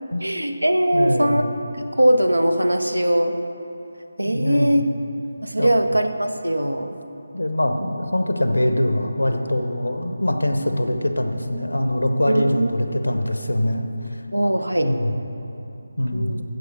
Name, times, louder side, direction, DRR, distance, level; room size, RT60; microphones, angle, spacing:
voice 1, 0.2-1.4 1.7-3.4 4.2-4.8 5.4-7.0 12.3-12.7 14.3-14.9 16.1-16.4, right 1 dB, 85° right, 8 dB, 0.8 m, -20 dB
voice 2, 0.9-1.4 4.2-4.8 5.6-5.7 7.3-14.2 14.8-15.1 16.0-16.4, left 1 dB, 80° left, 6 dB, 1.0 m, -23 dB
14.5 x 4.9 x 6.6 m, 2.9 s
figure-of-eight pair, 155°, 0 cm